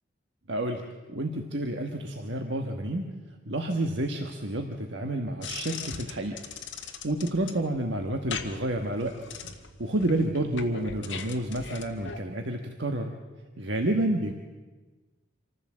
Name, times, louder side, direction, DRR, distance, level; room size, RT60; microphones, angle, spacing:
voice 1, 0.5-3.1 3.5-6.3 6.8-9.1 9.8-13.1 13.6-14.3, right 1 dB, 65° right, 3 dB, 1.4 m, -29 dB
sound 1, 5.4-12.2, left 6 dB, 65° left, 1.7 m, -40 dB
26.0 x 14.5 x 7.5 m, 1.3 s
head